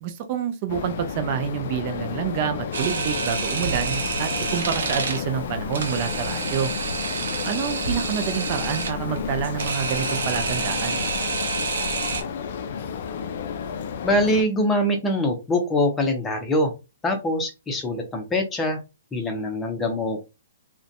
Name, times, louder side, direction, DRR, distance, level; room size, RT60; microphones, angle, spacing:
voice 1, 0.0-6.7 7.4-11.0, right 8 dB, 40° right, 0.4 m, -28 dB
sound 1, 0.7-14.4, left 7 dB, 55° left, 0.3 m, -32 dB
Camera, 2.7-12.2, right 4 dB, 70° right, 0.7 m, -29 dB
voice 2, 14.0-16.7 17.0-18.8 19.1-20.2, left 1 dB, 15° left, 0.6 m, -23 dB
2.5 x 2.1 x 2.4 m
hypercardioid pair, 140°, 0 cm